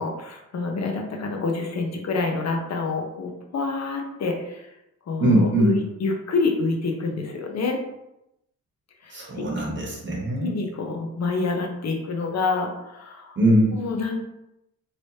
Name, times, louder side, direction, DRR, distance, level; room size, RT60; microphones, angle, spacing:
voice 1, 0.0-4.7 5.1-7.8 9.0-9.4 10.4-13.4 13.7-14.2, left 3 dB, 50° left, 2 dB, 0.8 m, -27 dB
voice 2, 5.2-5.8 9.1-10.5 13.4-13.8, right 1 dB, 35° right, -3 dB, 1.1 m, -21 dB
3.1 x 3.0 x 2.8 m, 0.86 s
cardioid pair, 115°, 34 cm